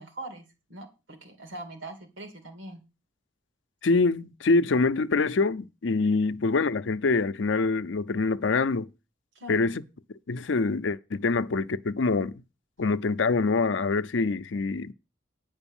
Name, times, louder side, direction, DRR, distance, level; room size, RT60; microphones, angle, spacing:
voice 1, 0.0-2.8 9.3-9.7, right 1 dB, 90° right, 2.5 m, -42 dB
voice 2, 3.8-8.9 9.5-9.8 10.3-12.4 12.8-14.9, left 3 dB, 85° left, 0.6 m, -25 dB
9.9 x 5.3 x 7.1 m
head